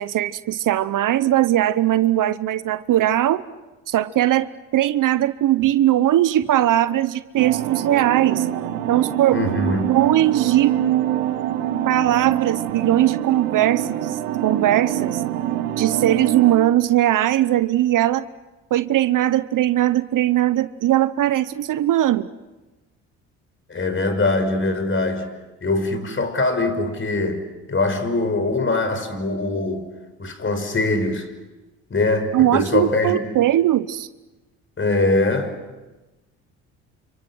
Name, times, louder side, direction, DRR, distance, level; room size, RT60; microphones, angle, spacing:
voice 1, 0.0-3.4 3.9-8.5 8.9-9.4 9.9-10.7 11.9-15.2 15.8-18.3 18.7-22.3 32.3-34.1, right 13 dB, 55° right, 15 dB, 1.0 m, -19 dB
sound 1, 7.4-16.6, right 12 dB, 90° right, 1.7 m, -25 dB
voice 2, 9.3-10.0 23.7-25.3 25.6-29.9 30.2-31.3 31.9-33.2 34.8-35.6, left 2 dB, 35° left, 8 dB, 5.5 m, -22 dB
30.0 x 27.5 x 6.3 m, 1.1 s
hypercardioid pair, 65°, 37 cm